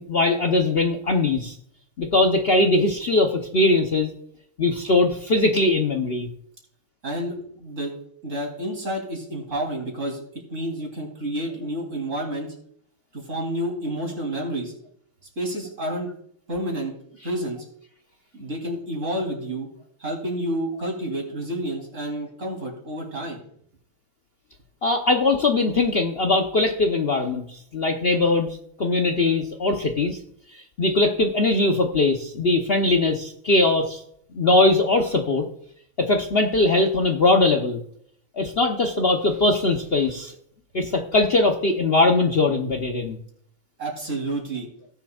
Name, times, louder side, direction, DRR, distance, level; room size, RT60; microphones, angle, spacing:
voice 1, 0.0-1.5 2.0-4.1 4.6-6.3 24.8-30.2 30.5-34.0 34.3-35.4 36.0-37.8 38.4-40.3 40.7-43.2, left 2 dB, 90° left, 3 dB, 0.5 m, -21 dB
voice 2, 7.0-7.9 8.2-10.2 10.5-12.5 13.1-14.7 15.4-16.1 16.5-16.9 17.2-17.6 18.3-19.7 20.0-23.4 43.8-44.7, right 1 dB, 35° right, -1 dB, 3.5 m, -29 dB
18.0 x 7.1 x 2.4 m, 0.66 s
omnidirectional pair, 2.3 m